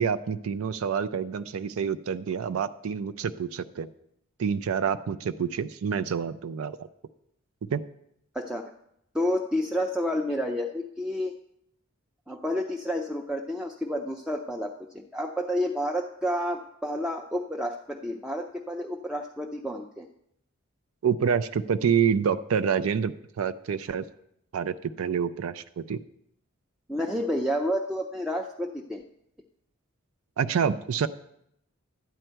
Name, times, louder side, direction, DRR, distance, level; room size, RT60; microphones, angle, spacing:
voice 1, 0.0-3.9 4.4-6.8 7.7-7.8 21.0-24.0 24.5-26.0 30.4-31.1, right 7 dB, 80° right, 11 dB, 0.4 m, -27 dB
voice 2, 8.3-8.7 9.1-11.3 12.3-20.1 26.9-29.0, equal, 5° right, 1 dB, 0.4 m, -30 dB
12.0 x 9.1 x 4.5 m, 0.77 s
head